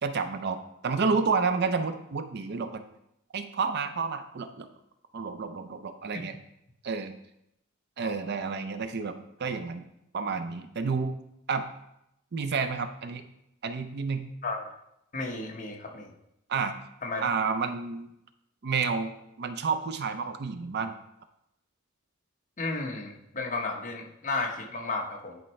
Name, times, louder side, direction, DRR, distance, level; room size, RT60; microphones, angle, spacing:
voice 1, 0.0-2.8 3.3-4.7 5.1-6.4 6.8-7.1 8.0-9.8 10.1-11.2 11.5-11.6 12.3-13.2 13.6-14.3 16.5-16.7 17.2-18.1 18.6-19.1 19.4-21.0, right 5 dB, 55° right, 9 dB, 0.5 m, -30 dB
voice 2, 8.0-8.4 14.4-14.7 15.1-16.1 17.0-17.2 22.6-25.4, left 3 dB, 40° left, 1 dB, 1.0 m, -33 dB
10.0 x 4.5 x 3.2 m, 0.81 s
head